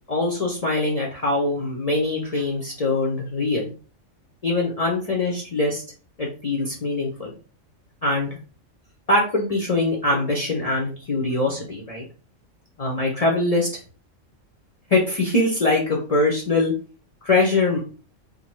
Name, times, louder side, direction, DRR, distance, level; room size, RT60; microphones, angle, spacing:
voice 1, 0.1-3.7 4.4-5.8 6.2-7.3 8.0-8.4 9.1-12.0 12.8-13.7 14.9-16.7 17.2-17.8, left 2 dB, 45° left, -2 dB, 0.5 m, -23 dB
2.6 x 2.1 x 3.1 m, 0.36 s
omnidirectional pair, 1.4 m